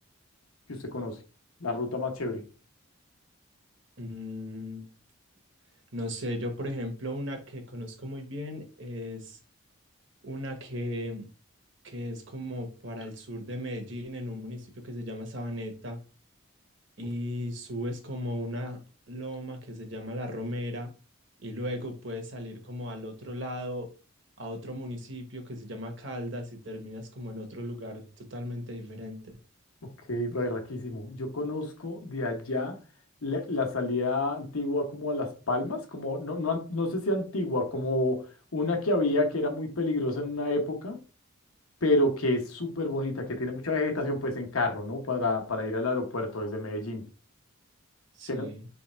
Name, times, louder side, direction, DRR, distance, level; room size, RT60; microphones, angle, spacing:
voice 1, 0.7-1.2 1.6-2.4 29.8-32.8 33.2-41.0 41.8-47.1 48.3-48.5, left 2 dB, 85° left, 1.1 m, -29 dB
voice 2, 4.0-4.9 5.9-9.4 10.2-11.3 11.8-16.0 17.0-18.8 19.1-20.9 21.4-23.9 24.4-29.4 48.2-48.6, equal, 60° right, 1.1 m, -36 dB
3.5 x 3.3 x 4.3 m
head